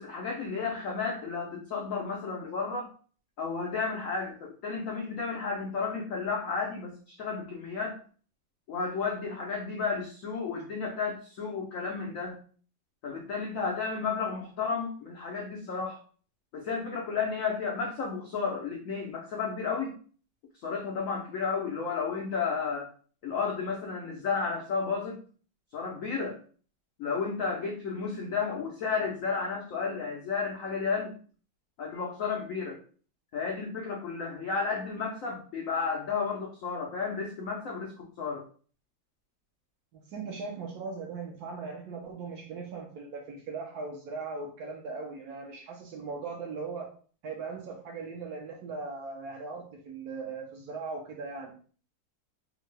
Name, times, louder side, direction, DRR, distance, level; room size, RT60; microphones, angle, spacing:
voice 1, 0.0-2.9 3.4-8.0 8.7-12.4 13.0-16.0 16.5-19.9 20.6-22.9 23.2-25.2 25.7-26.4 27.0-31.1 31.8-32.8 33.3-38.4, left 5 dB, 85° left, -1 dB, 0.7 m, -32 dB
voice 2, 40.1-46.9 47.2-51.5, right 4 dB, 70° right, 1 dB, 1.0 m, -39 dB
3.5 x 2.1 x 3.2 m, 0.42 s
omnidirectional pair, 2.1 m